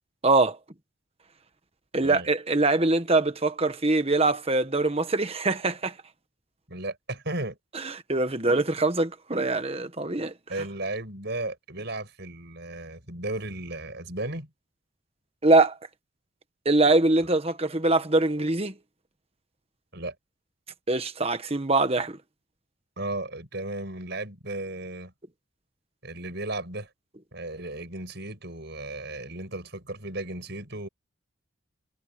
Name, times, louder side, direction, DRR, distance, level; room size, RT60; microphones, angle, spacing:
voice 1, 0.2-0.6 1.9-5.9 7.7-10.3 15.4-15.8 16.6-18.7 20.9-22.2, right 2 dB, 30° right, 1.4 m, -23 dB
voice 2, 6.7-7.6 10.5-14.5 19.9-20.1 23.0-25.1 26.0-26.9 27.3-30.9, right 2 dB, 50° right, 7.4 m, -35 dB
head